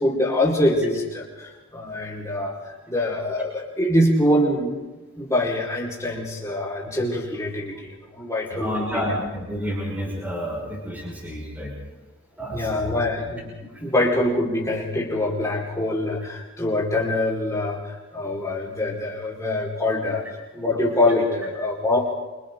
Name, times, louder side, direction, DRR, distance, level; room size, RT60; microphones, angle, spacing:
voice 1, 0.0-4.8 5.2-8.7 12.5-13.5 13.8-20.2 20.5-22.1, left 1 dB, 15° left, -3 dB, 4.9 m, -24 dB
voice 2, 8.5-11.7 12.4-13.0 13.7-13.8, equal, 10° right, -3 dB, 5.8 m, -30 dB
28.5 x 26.5 x 3.9 m, 1.2 s
head